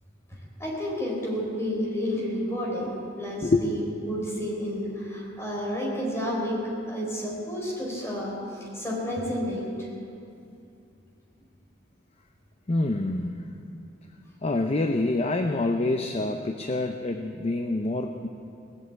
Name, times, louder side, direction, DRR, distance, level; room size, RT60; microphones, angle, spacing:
voice 1, 0.6-9.8, equal, 15° left, -3 dB, 4.0 m, -31 dB
voice 2, 12.7-13.4 14.4-18.3, left 2 dB, 35° left, 5 dB, 0.6 m, -26 dB
18.5 x 7.9 x 8.5 m, 2.6 s
head